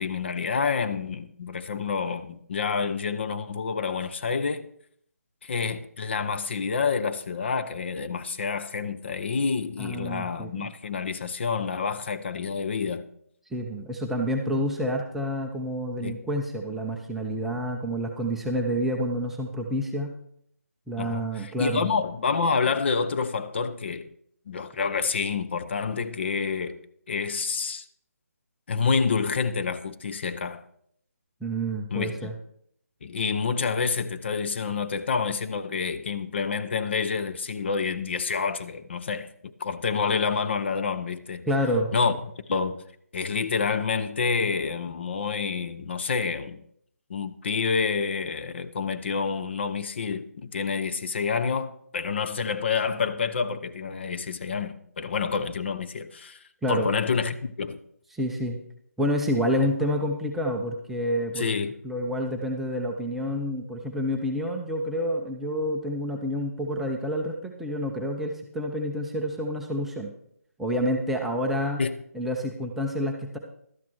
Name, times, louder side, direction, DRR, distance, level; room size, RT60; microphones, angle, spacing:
voice 1, 0.0-4.7 5.4-13.0 16.0-16.2 21.0-24.1 24.5-26.8 27.1-27.8 28.7-30.6 31.9-32.3 33.0-41.5 41.9-42.1 42.5-42.8 43.1-46.6 47.1-56.4 56.7-57.8 61.4-61.7 71.8-72.0, left 5 dB, 45° left, 0.7 m, -28 dB
voice 2, 9.8-10.7 13.5-20.1 20.9-21.9 31.4-32.3 41.4-41.9 56.6-56.9 58.1-58.6 59.0-61.5 61.8-70.1 70.6-71.8 72.1-73.4, equal, ahead, 0.6 m, -28 dB
12.5 x 9.2 x 4.6 m
figure-of-eight pair, 155°, 9 cm